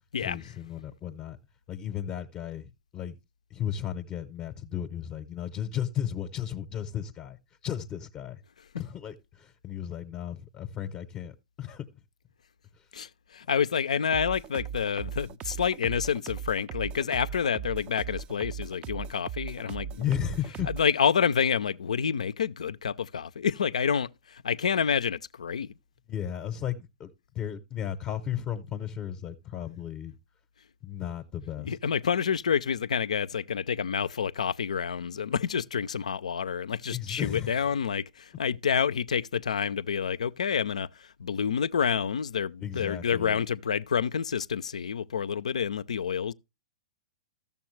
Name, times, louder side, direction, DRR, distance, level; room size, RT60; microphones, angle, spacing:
voice 1, 0.2-1.4 1.7-3.1 3.5-7.4 7.6-8.4 8.8-11.9 20.0-20.7 26.1-30.1 30.8-31.8 36.9-37.6 42.6-43.4, left 10 dB, 30° left, 0.7 m, -34 dB
voice 2, 12.9-20.0 20.7-25.7 31.6-40.9 41.2-46.3, left 7 dB, 75° left, 0.4 m, -28 dB
sound 1, 14.1-20.9, right 8 dB, 30° right, 0.4 m, -38 dB
13.5 x 7.0 x 3.2 m
figure-of-eight pair, 110°, 4 cm